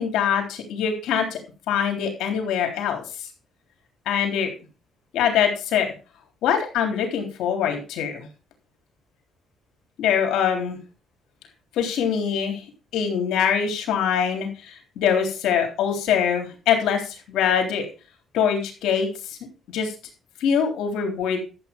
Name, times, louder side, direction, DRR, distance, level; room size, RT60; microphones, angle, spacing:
voice 1, 0.0-1.4 1.7-3.3 4.1-4.5 5.1-5.9 6.4-8.3 10.0-10.8 11.7-12.6 12.9-17.9 18.3-19.4 19.7-19.9 20.4-21.4, left 7 dB, 85° left, 4 dB, 3.7 m, -23 dB
12.5 x 8.1 x 5.4 m, 0.34 s
cardioid pair, 90°, 0 cm